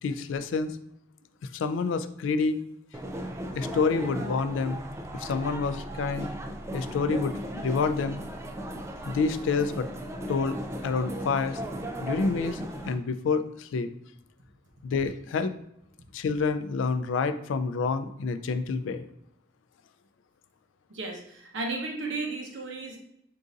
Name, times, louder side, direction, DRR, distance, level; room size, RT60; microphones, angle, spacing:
voice 1, 0.0-0.8 1.5-2.6 3.5-4.8 5.1-6.3 6.7-8.2 9.1-9.9 10.3-10.6 10.8-11.6 12.0-13.9 14.8-15.5 16.1-19.0, left 4 dB, 75° left, 11 dB, 0.3 m, -28 dB
sound 1, 2.9-12.9, right 1 dB, 15° right, 0.3 m, -37 dB
voice 2, 20.9-23.0, right 3 dB, 75° right, 1 dB, 0.9 m, -34 dB
3.8 x 2.5 x 3.9 m, 0.75 s
head